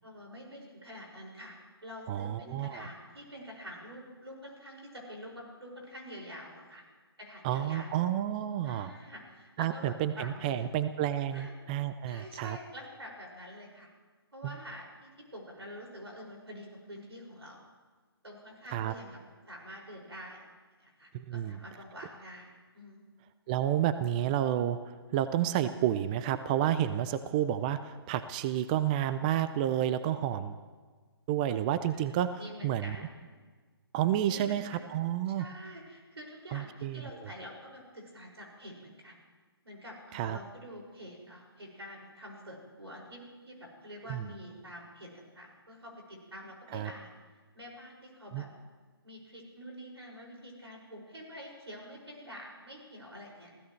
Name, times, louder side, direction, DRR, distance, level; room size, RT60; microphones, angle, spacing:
voice 1, 0.0-1.6 1.8-6.8 7.2-7.9 8.6-10.7 11.3-11.5 12.1-13.9 14.3-17.6 18.2-19.2 19.5-20.4 20.8-23.1 31.9-32.0 32.4-33.2 34.3-34.9 35.3-39.2 39.6-47.1 47.5-48.5 49.0-53.5, equal, 90° right, -1 dB, 5.9 m, -47 dB
voice 2, 2.1-2.9 7.4-8.9 9.6-12.6 14.4-14.5 18.7-18.9 21.1-21.6 23.5-30.6 31.3-32.9 33.9-35.5 36.5-37.0 40.1-40.4 44.1-44.3 46.7-46.9 48.3-48.4, right 11 dB, 20° right, 12 dB, 0.4 m, -30 dB
27.0 x 16.0 x 3.2 m, 1.4 s
figure-of-eight pair, 145°, 13 cm